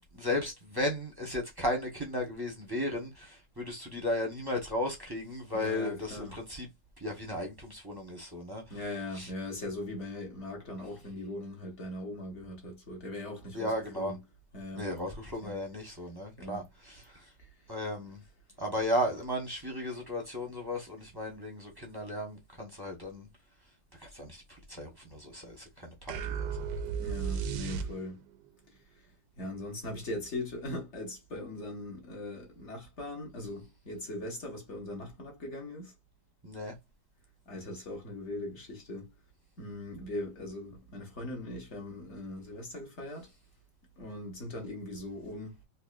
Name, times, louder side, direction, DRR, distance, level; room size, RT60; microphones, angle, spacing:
voice 1, 0.1-6.7 7.0-8.6 9.1-9.3 13.5-14.1 14.7-17.3 17.7-18.2 18.6-23.3 24.0-26.7 27.3-27.5 36.4-36.7, left 1 dB, 20° right, 0.8 m, -35 dB
voice 2, 5.5-6.3 8.7-14.2 14.5-14.9 15.4-15.6 16.4-16.7 26.9-28.2 29.4-35.9 37.5-39.1 39.6-43.3 44.0-45.6, left 1 dB, 45° left, 1.5 m, -40 dB
sound 1, 26.1-28.4, right 6 dB, 75° right, 1.2 m, -34 dB
4.2 x 2.9 x 2.4 m
omnidirectional pair, 1.8 m